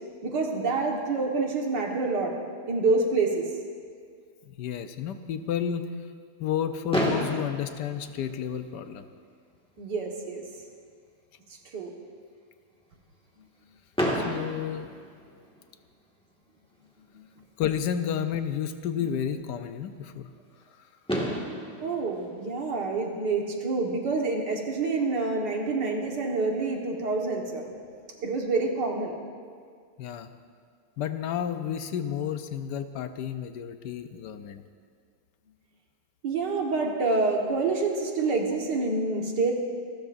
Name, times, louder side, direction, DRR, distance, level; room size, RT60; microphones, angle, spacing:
voice 1, 0.2-2.3 2.7-3.5 9.8-10.4 11.7-11.9 21.8-27.8 28.2-29.2 36.2-39.5, right 3 dB, 80° right, 0 dB, 2.2 m, -27 dB
voice 2, 4.4-5.9 6.4-9.1 14.1-14.9 17.6-20.3 30.0-30.3 31.0-34.6, left 9 dB, 80° left, 9 dB, 1.3 m, -31 dB
Fireworks, 6.9-8.9 9.8-9.9 10.0-10.2 10.6-10.7 13.9-15.8 17.5-17.6 20.6-20.7 21.1-23.4, equal, 5° left, 1.7 m, -32 dB
27.0 x 13.0 x 2.6 m, 2.1 s
omnidirectional pair, 1.8 m